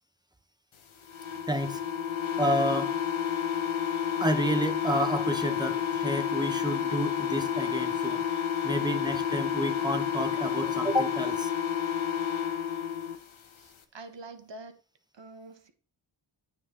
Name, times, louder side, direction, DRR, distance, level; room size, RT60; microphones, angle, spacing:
sound 1, 1.1-13.2, left 8 dB, 80° left, 1.2 m, -30 dB
voice 1, 1.5-1.8 2.4-3.0 4.2-8.2 8.6-11.5, right 1 dB, 10° right, 1.1 m, -30 dB
voice 2, 13.5-14.8 15.1-15.7, right 2 dB, 60° right, 1.4 m, -46 dB
9.1 x 7.8 x 3.0 m
wide cardioid pair, 85°, 48 cm